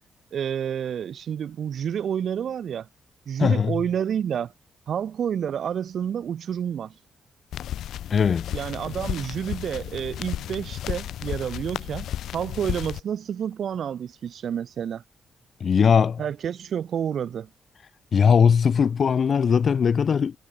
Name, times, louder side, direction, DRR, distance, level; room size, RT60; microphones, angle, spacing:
voice 1, 0.3-2.9 3.3-4.5 4.9-6.9 8.5-15.0 16.2-17.5, right 8 dB, 55° right, 3.6 m, -29 dB
voice 2, 3.4-3.8 8.1-8.5 15.6-16.2 18.1-20.3, left 6 dB, 40° left, 1.0 m, -19 dB
sound 1, 7.5-13.0, left 11 dB, 90° left, 1.6 m, -33 dB
wide cardioid pair, 155°, 0 cm